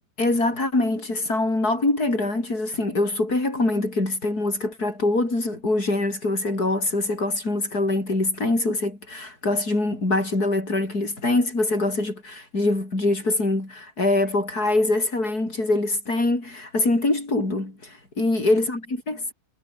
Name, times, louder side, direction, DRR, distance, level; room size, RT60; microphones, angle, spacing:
voice 1, 0.2-19.3, left 2 dB, 55° left, 7.4 m, -24 dB
omnidirectional pair, 2.0 m